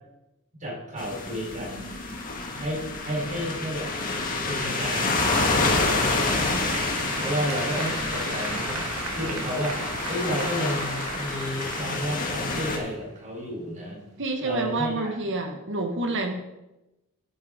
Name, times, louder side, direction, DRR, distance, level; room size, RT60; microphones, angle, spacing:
voice 1, 0.6-1.9 2.5-3.9 4.4-6.7 7.2-9.8 10.1-14.1 14.4-15.1, equal, 35° right, -3 dB, 4.4 m, -32 dB
sound 1, 1.0-12.8, left 3 dB, 40° left, 1.6 m, -28 dB
Applause, 4.2-13.2, right 3 dB, 75° right, 1.9 m, -37 dB
voice 2, 14.2-16.3, right 2 dB, 60° right, 4 dB, 1.4 m, -28 dB
9.5 x 7.6 x 5.1 m, 0.95 s
head